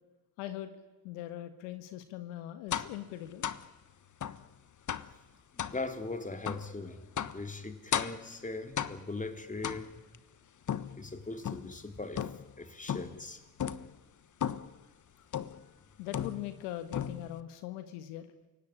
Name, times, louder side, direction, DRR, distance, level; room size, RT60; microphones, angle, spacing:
voice 1, 0.4-0.7 1.0-3.5 16.0-18.3, left 13 dB, 80° left, 1.8 m, -41 dB
sound 1, 2.7-3.0 3.4-3.7 4.2-4.4 4.9-5.2 5.6-5.8 6.5-6.7 7.2-7.4 7.9-8.3 8.8-9.2 9.6-10.2 10.7-11.8 12.2-12.6 12.9-13.2 13.6-13.9 14.4-14.8 15.3-15.7 16.1-16.6 16.9-17.4, left 9 dB, 40° left, 1.3 m, -35 dB
voice 2, 5.6-7.0 7.3-9.9 11.0-12.3 12.6-13.4, left 3 dB, 15° left, 3.3 m, -40 dB
28.5 x 17.5 x 10.0 m
hypercardioid pair, 60°, 46 cm